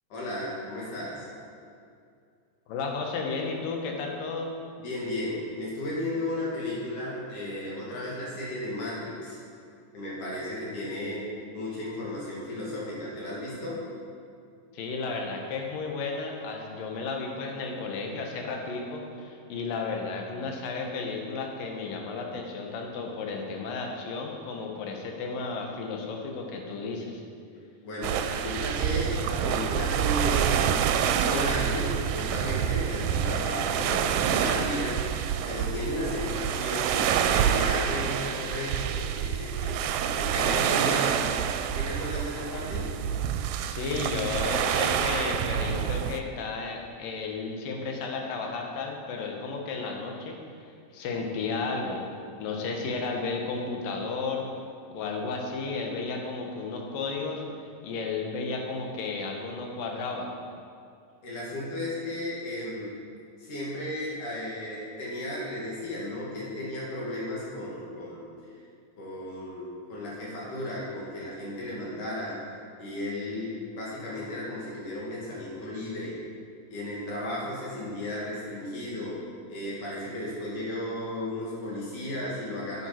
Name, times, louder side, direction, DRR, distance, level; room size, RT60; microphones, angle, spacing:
voice 1, 0.1-1.3 4.8-9.4 9.9-11.2 11.5-13.8 27.8-30.7 31.2-35.0 35.5-39.8 40.1-41.3 41.7-42.9 61.2-62.9 63.4-68.3 69.0-72.4 72.8-76.2 76.7-79.2 79.5-82.9, left 1 dB, 65° left, -6 dB, 3.6 m, -34 dB
voice 2, 2.7-4.5 14.7-27.2 43.7-52.0 52.4-54.5 54.9-60.3, left 4 dB, 85° left, 1 dB, 2.8 m, -33 dB
sound 1, 28.0-46.2, right 9 dB, 85° right, 2.2 m, -27 dB
9.4 x 8.8 x 4.4 m, 2.4 s
omnidirectional pair, 3.9 m